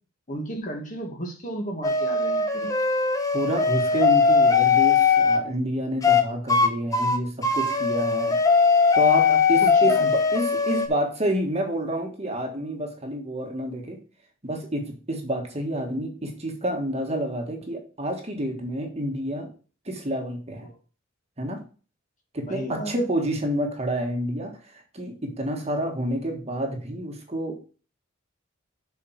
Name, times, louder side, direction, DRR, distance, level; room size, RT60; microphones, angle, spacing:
voice 1, 0.3-2.7 9.3-10.1 20.6-20.8 22.4-22.9, right 1 dB, 40° left, 2 dB, 2.0 m, -34 dB
sound 1, 1.8-5.4 6.0-6.2 6.5-6.7 6.9-10.9, left 5 dB, 15° left, 0.9 m, -20 dB
voice 2, 3.3-8.4 8.9-14.0 14.4-19.5 19.8-20.7 21.4-21.6 22.3-27.7, right 1 dB, 30° right, 3 dB, 1.5 m, -29 dB
7.1 x 4.7 x 5.7 m, 0.37 s
head